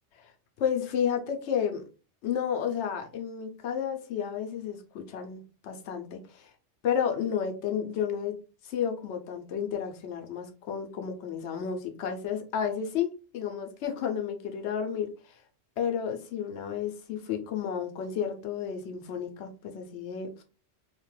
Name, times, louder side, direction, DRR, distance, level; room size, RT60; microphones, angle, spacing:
voice 1, 0.6-1.8 2.2-6.5 6.8-8.3 8.6-15.4 15.8-20.4, left 8 dB, 80° left, 4 dB, 0.9 m, -32 dB
2.8 x 2.2 x 3.1 m, 0.34 s
omnidirectional pair, 1.2 m